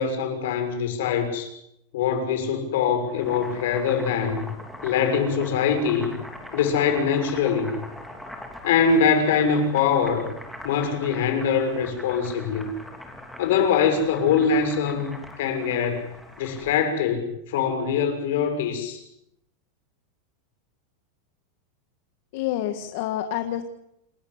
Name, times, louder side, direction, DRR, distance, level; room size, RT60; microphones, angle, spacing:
voice 1, 0.0-1.5 1.9-4.5 4.8-6.2 6.5-7.8 8.6-10.3 10.6-12.7 13.4-15.1 15.4-16.1 16.4-19.0, left 6 dB, 70° left, 6 dB, 6.5 m, -23 dB
Boiling, 3.0-16.8, left 1 dB, ahead, 3.3 m, -41 dB
voice 2, 22.3-23.6, left 12 dB, 55° left, 8 dB, 1.9 m, -28 dB
29.0 x 13.5 x 9.7 m, 0.78 s
supercardioid pair, 165°, 0 cm